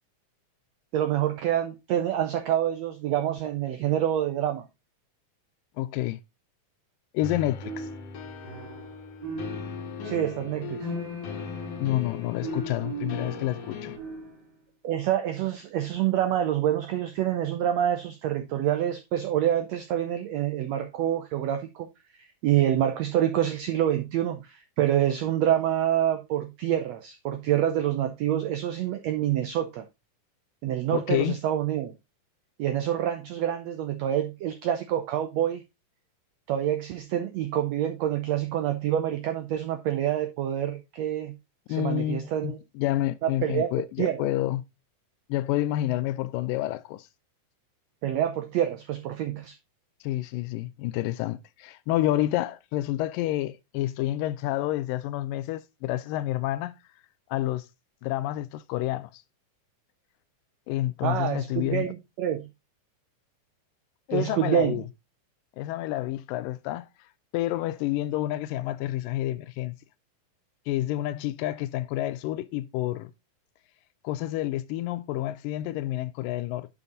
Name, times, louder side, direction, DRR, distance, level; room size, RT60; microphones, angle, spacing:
voice 1, 0.9-4.7 10.0-10.9 14.8-21.9 22.1-29.8 30.6-31.9 32.6-35.6 36.5-41.4 41.7-42.6 43.2-43.7 44.0-44.2 48.0-49.6 61.0-62.5 64.1-64.8, right 11 dB, 85° right, 1.5 m, -27 dB
voice 2, 5.8-6.2 7.1-7.9 11.8-13.9 30.9-31.4 41.7-44.6 45.3-47.1 50.0-56.8 57.3-57.7 58.0-59.1 60.7-61.9 64.1-64.8 65.6-66.9 67.3-69.8 70.7-73.1 74.0-76.7, left 14 dB, 85° left, 2.2 m, -29 dB
sound 1, 7.2-14.0, left 6 dB, 65° left, 1.8 m, -39 dB
sound 2, 7.6-8.9 9.2-14.5, right 2 dB, 30° right, 3.4 m, -38 dB
7.1 x 5.6 x 3.9 m
omnidirectional pair, 3.9 m